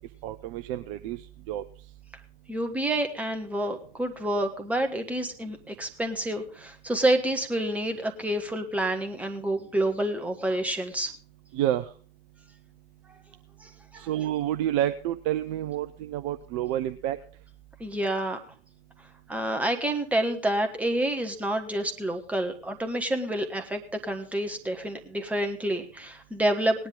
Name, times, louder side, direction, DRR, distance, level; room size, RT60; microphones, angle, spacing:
voice 1, 0.2-1.6 11.5-11.9 14.0-17.2, right 12 dB, 30° right, 10 dB, 0.6 m, -29 dB
voice 2, 2.5-11.1 13.6-14.1 17.8-18.4 19.3-26.9, right 1 dB, 5° right, 5 dB, 1.4 m, -28 dB
18.5 x 10.0 x 3.8 m, 0.44 s
figure-of-eight pair, 100°, 31 cm